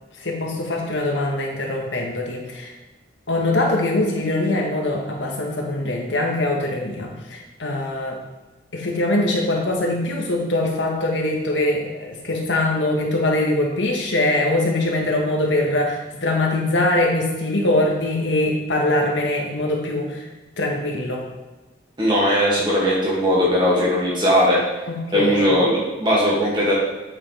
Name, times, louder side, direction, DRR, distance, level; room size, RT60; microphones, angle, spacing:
voice 1, 0.2-2.7 3.3-8.2 8.7-20.2 20.6-21.2 24.9-25.5, left 1 dB, 85° left, 0 dB, 1.6 m, -22 dB
voice 2, 22.0-24.6 25.1-26.7, equal, 25° right, -6 dB, 2.3 m, -19 dB
8.2 x 6.9 x 3.5 m, 1.1 s
head